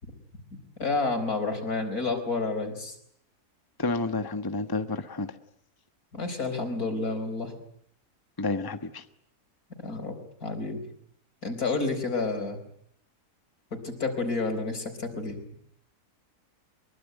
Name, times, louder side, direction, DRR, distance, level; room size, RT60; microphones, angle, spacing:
voice 1, 0.8-3.0 6.1-7.5 9.8-10.8 11.4-12.6 13.7-15.4, left 3 dB, 70° left, 7 dB, 5.0 m, -30 dB
voice 2, 3.8-5.3 8.4-9.0, left 3 dB, 15° left, 8 dB, 1.2 m, -30 dB
24.0 x 22.5 x 9.3 m, 0.70 s
omnidirectional pair, 1.6 m